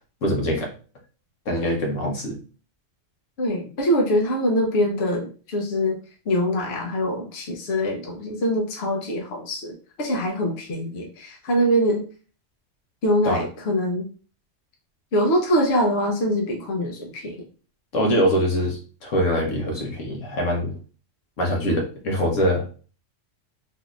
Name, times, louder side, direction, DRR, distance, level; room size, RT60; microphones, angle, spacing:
voice 1, 0.2-0.7 1.5-2.4 13.2-13.4 17.9-20.7 21.4-22.8, equal, 80° left, 0 dB, 1.3 m, -23 dB
voice 2, 3.4-6.0 6.3-12.0 13.0-14.1 15.1-17.4, equal, 60° left, 1 dB, 1.0 m, -23 dB
3.6 x 2.7 x 2.4 m, 0.37 s
omnidirectional pair, 1.3 m